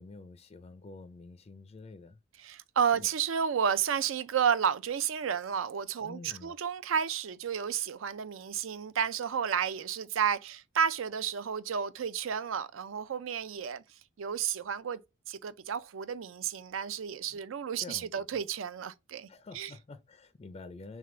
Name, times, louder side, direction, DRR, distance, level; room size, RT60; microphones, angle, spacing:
voice 1, 0.0-2.2 3.0-3.1 6.0-6.5 17.8-18.3 19.3-21.0, left 3 dB, 30° left, 0.4 m, -48 dB
voice 2, 2.4-13.8 14.2-15.0 15.3-19.3 19.5-19.7, right 7 dB, 80° right, 0.4 m, -31 dB
3.5 x 3.2 x 3.7 m
head